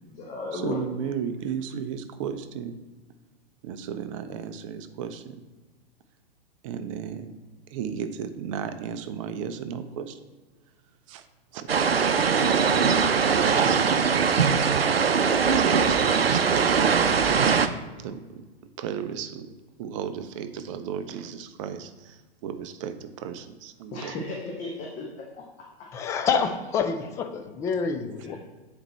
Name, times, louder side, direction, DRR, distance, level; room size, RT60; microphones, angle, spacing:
voice 1, 0.0-1.1 23.9-25.9 26.4-26.5 27.0-27.1 28.2-28.4, left 3 dB, 25° left, -1 dB, 1.1 m, -36 dB
voice 2, 0.5-2.8 3.6-5.4 6.6-7.4 7.7-10.3 11.1-11.3 11.5-14.9 15.1-17.2 18.0-18.4 18.8-24.1, right 7 dB, 35° right, 10 dB, 0.6 m, -35 dB
sound 1, 11.7-17.7, right 6 dB, 80° right, 0.6 m, -21 dB
voice 3, 25.9-28.4, left 5 dB, 10° left, 7 dB, 0.3 m, -27 dB
7.7 x 4.3 x 4.2 m, 1.3 s
figure-of-eight pair, 105°, 29 cm